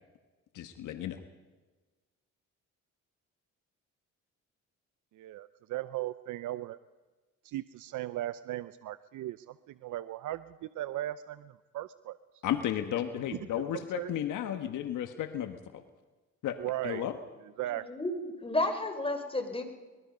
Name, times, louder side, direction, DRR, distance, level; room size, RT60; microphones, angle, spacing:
voice 1, 0.6-1.2 12.4-15.8 16.4-16.5 16.8-17.2, left 10 dB, 80° left, 8 dB, 1.6 m, -33 dB
voice 2, 5.1-6.8 7.4-12.2 13.7-14.2 16.6-17.1 17.6-17.9, right 14 dB, 80° right, 14 dB, 0.7 m, -37 dB
voice 3, 17.9-19.6, left 2 dB, 20° left, 6 dB, 3.9 m, -32 dB
24.5 x 21.5 x 5.4 m, 1.3 s
cardioid pair, 90°, 30 cm